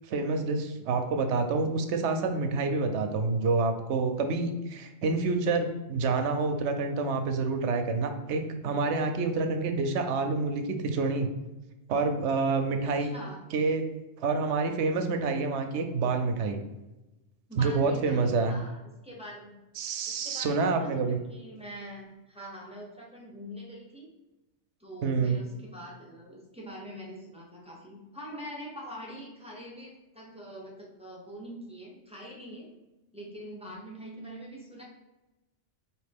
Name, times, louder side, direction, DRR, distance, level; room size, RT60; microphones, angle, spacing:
voice 1, 0.1-11.3 11.9-13.1 13.5-13.9 14.2-16.6 17.6-18.6 19.8-21.2 25.0-25.4, right 4 dB, 75° right, 6 dB, 0.8 m, -28 dB
voice 2, 12.8-13.4 17.5-19.6 20.1-24.1 24.8-32.7 33.1-34.8, equal, 5° right, -4 dB, 0.7 m, -44 dB
4.1 x 2.9 x 3.4 m, 1.0 s
omnidirectional pair, 1.2 m